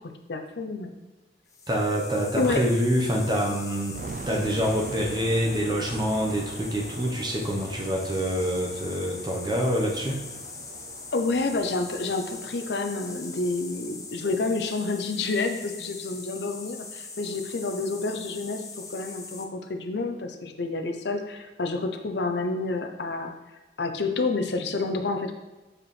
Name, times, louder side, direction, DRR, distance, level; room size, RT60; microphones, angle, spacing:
voice 1, 0.3-0.9 2.3-2.6 11.1-18.6 18.9-23.3 23.8-25.3, left 3 dB, 75° left, 5 dB, 0.6 m, -29 dB
sound 1, 1.5-19.4, left 4 dB, 20° left, 0.5 m, -41 dB
voice 2, 1.7-4.0 4.3-10.2, equal, 25° right, -1 dB, 0.9 m, -26 dB
sound 2, 3.9-14.8, right 3 dB, 45° right, 0.3 m, -43 dB
7.3 x 4.9 x 3.3 m, 1.1 s
head